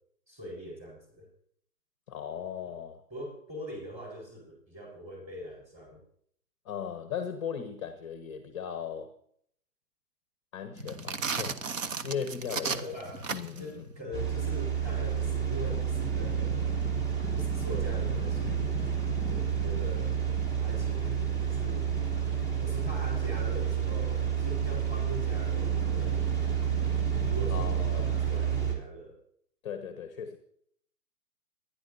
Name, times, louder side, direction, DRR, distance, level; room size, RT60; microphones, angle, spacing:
voice 1, 0.3-1.3 3.1-6.0 12.6-13.3 13.6-16.7 17.3-19.0 19.3-20.1 20.6-21.9 22.6-26.5 27.3-29.2, equal, 15° right, 4.4 m, -42 dB
voice 2, 2.1-3.0 6.6-9.1 10.5-13.0 13.3-13.9 27.5-28.1 29.6-30.4, left 7 dB, 20° left, 0.7 m, -37 dB
sound 1, 10.7-28.3, left 1 dB, 80° right, 4.1 m, -42 dB
sound 2, 10.8-13.7, right 6 dB, 50° right, 0.9 m, -34 dB
sound 3, 14.1-28.7, right 8 dB, 35° right, 2.9 m, -29 dB
22.5 x 10.5 x 2.7 m
hypercardioid pair, 150°, 48 cm